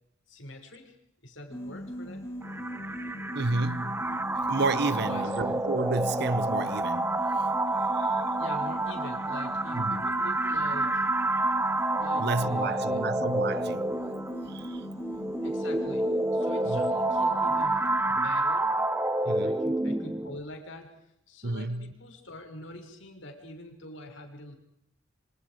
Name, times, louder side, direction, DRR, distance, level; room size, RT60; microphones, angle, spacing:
voice 1, 0.3-1.0 1.2-2.2 5.0-5.3 8.4-11.1 12.0-13.0 15.4-18.8 19.2-21.0 21.3-24.5, left 1 dB, 75° left, 6.5 m, -44 dB
sound 1, 1.5-18.3, equal, 15° left, 4.8 m, -39 dB
sound 2, 2.4-20.4, right 2 dB, 10° right, 1.1 m, -29 dB
voice 2, 3.3-4.1 4.4-7.5 7.9-8.2 9.7-10.0 12.2-14.0 14.5-14.9 16.6-16.9 19.2-19.6 21.4-21.9, right 3 dB, 60° right, 1.0 m, -31 dB
28.0 x 26.5 x 5.2 m
head